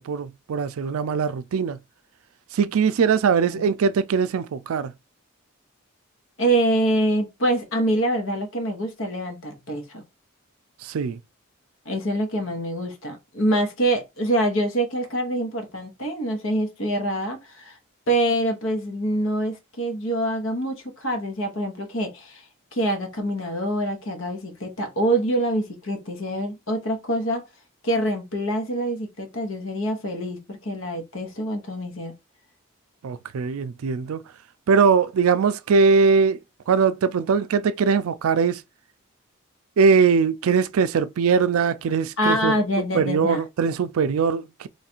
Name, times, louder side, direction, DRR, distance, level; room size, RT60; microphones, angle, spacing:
voice 1, 0.0-1.8 2.5-4.9 10.8-11.2 33.0-34.2 34.7-38.6 39.8-42.5 42.9-44.7, right 5 dB, 80° right, 0.4 m, -21 dB
voice 2, 6.4-10.0 11.8-17.8 18.1-22.4 22.7-27.4 27.8-32.1 42.2-43.4, right 1 dB, 70° left, 1.1 m, -25 dB
3.2 x 2.4 x 4.3 m
head